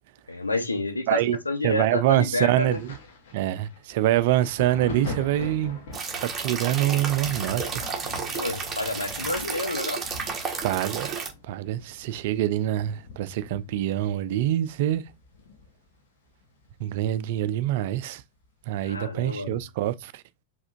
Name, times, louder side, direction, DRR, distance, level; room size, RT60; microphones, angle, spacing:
voice 1, 0.3-2.8 8.3-10.0 18.8-19.6, left 2 dB, 85° left, 0.8 m, -29 dB
voice 2, 1.1-1.4 1.6-2.9 3.3-5.8 6.2-7.8 10.6-15.0 16.8-18.2 18.7-20.2, right 13 dB, 50° right, 0.4 m, -25 dB
Thunder, 2.6-16.0 16.3-17.6 18.4-18.6, left 3 dB, 55° left, 1.1 m, -43 dB
sound 1, 5.9-11.3, right 5 dB, 20° right, 1.3 m, -32 dB
4.8 x 3.5 x 2.5 m
figure-of-eight pair, 95°, 0 cm